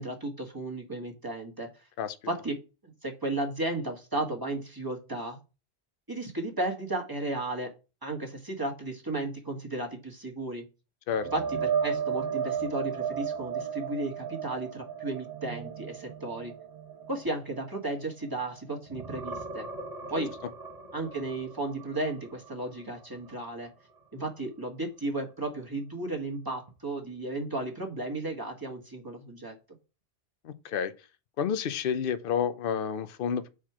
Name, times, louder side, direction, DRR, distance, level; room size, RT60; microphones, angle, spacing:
voice 1, 0.0-1.7 2.3-2.6 2.8-5.4 6.1-7.7 8.0-10.6 11.3-16.5 17.1-19.7 20.1-20.3 20.9-23.7 24.1-29.6, right 2 dB, 20° right, 1.5 m, -34 dB
sound 1, 11.1-18.5 18.9-22.7 23.1-23.3 26.7-26.8, right 7 dB, 40° right, 1.1 m, -35 dB
voice 2, 30.4-30.9 31.4-33.5, left 7 dB, 60° left, 0.8 m, -30 dB
4.9 x 4.3 x 5.8 m
omnidirectional pair, 1.1 m